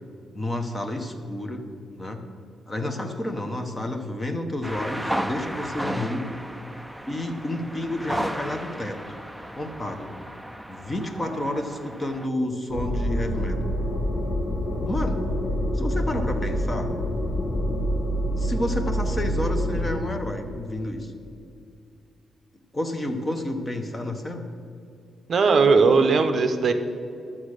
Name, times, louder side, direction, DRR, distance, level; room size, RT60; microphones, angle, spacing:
voice 1, 0.3-1.7 2.0-2.2 2.7-6.3 7.1-9.0 9.6-10.1 10.7-13.6 14.9-15.2 15.7-16.9 18.2-21.1 22.7-24.4, left 1 dB, 15° left, 4 dB, 0.9 m, -30 dB
sound 1, 4.6-12.3, equal, ahead, 0.3 m, -34 dB
sound 2, 12.7-20.0, equal, 60° left, 2.1 m, -26 dB
voice 2, 25.3-26.7, right 4 dB, 40° right, 8 dB, 0.7 m, -18 dB
11.5 x 7.3 x 6.5 m, 2.4 s
wide cardioid pair, 180°, 0 cm